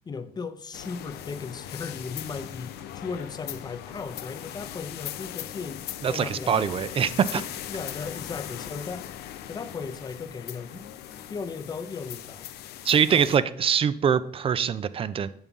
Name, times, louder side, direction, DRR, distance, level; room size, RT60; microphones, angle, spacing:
voice 1, 0.1-6.8 7.3-9.2 9.5-12.5 13.1-13.4, left 5 dB, 25° left, 0.5 m, -37 dB
sound 1, 0.7-13.4, left 11 dB, 70° left, 0.5 m, -39 dB
voice 2, 6.0-7.4 12.9-15.3, right 7 dB, 35° right, 0.4 m, -23 dB
7.1 x 3.6 x 5.3 m
cardioid pair, 110°, 17 cm